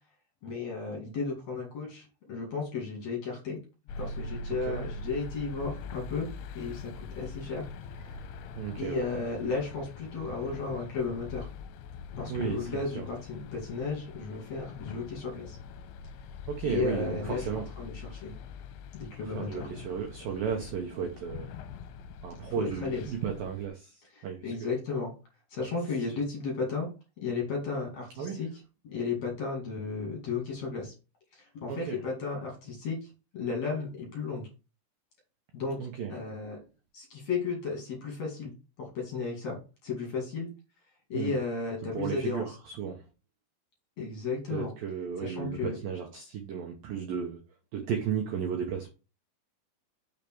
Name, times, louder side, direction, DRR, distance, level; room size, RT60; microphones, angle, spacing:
voice 1, 0.4-3.6 4.0-6.3 6.5-7.7 7.9-8.3 8.8-11.5 12.2-15.6 16.6-18.3 18.9-19.7 22.6-23.0 24.1-25.1 25.5-26.9 27.2-28.5 28.8-30.9 31.3-34.5 35.5-36.6 36.9-40.5 41.1-42.5 44.0-44.7 45.2-45.8, left 4 dB, 45° left, 2.7 m, -34 dB
sound 1, 3.9-23.7, left 4 dB, 85° left, 3.0 m, -43 dB
voice 2, 8.6-9.0 12.3-13.0 16.5-17.7 19.3-21.5 22.2-24.7 28.2-28.4 31.7-32.0 35.8-36.1 41.1-41.3 41.9-43.0 44.5-47.4 47.7-48.9, right 7 dB, 85° right, 2.0 m, -34 dB
6.5 x 5.2 x 4.6 m
omnidirectional pair, 5.6 m